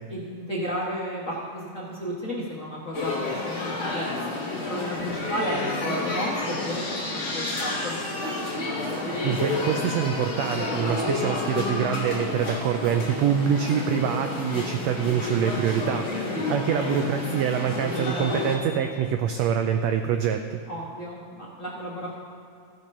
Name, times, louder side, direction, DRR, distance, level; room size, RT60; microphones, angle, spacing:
voice 1, 0.1-8.0 16.2-16.4 16.6-16.9 20.7-22.1, equal, 70° left, -5 dB, 0.7 m, -33 dB
sound 1, 2.9-18.6, left 2 dB, 45° left, 1.0 m, -30 dB
voice 2, 9.2-20.6, right 8 dB, 85° right, 6 dB, 1.5 m, -25 dB
15.5 x 6.0 x 5.4 m, 2.6 s
omnidirectional pair, 3.6 m